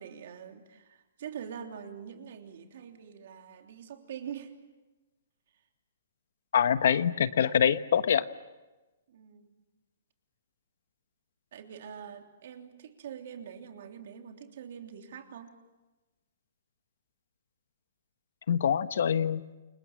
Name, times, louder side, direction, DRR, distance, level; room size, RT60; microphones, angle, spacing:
voice 1, 0.0-4.5 9.1-9.6 11.5-15.5, right 8 dB, 50° right, 4 dB, 3.3 m, -44 dB
voice 2, 6.5-8.3 18.5-19.4, left 8 dB, 60° left, 12 dB, 1.2 m, -25 dB
29.0 x 26.0 x 7.4 m, 1.1 s
hypercardioid pair, 170°, 0 cm